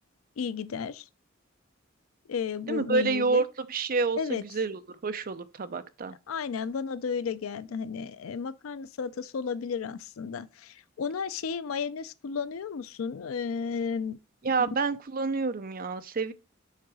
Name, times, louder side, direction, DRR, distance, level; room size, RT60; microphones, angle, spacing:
voice 1, 0.4-1.1 2.3-3.4 4.2-4.4 6.3-14.2, left 6 dB, 90° left, 0.4 m, -33 dB
voice 2, 2.7-6.2 14.4-16.3, right 4 dB, 45° right, 0.6 m, -28 dB
6.6 x 3.8 x 4.7 m
head